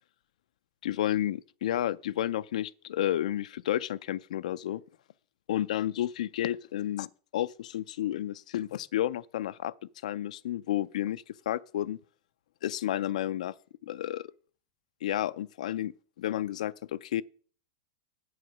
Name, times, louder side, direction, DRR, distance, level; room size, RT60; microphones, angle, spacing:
voice 1, 0.8-4.8 5.5-7.1 7.3-9.7 10.0-12.0 12.6-13.5 13.8-14.3 15.0-15.9 16.2-17.2, left 12 dB, 85° left, 0.4 m, -31 dB
8.8 x 7.8 x 5.9 m
supercardioid pair, 165°, 4 cm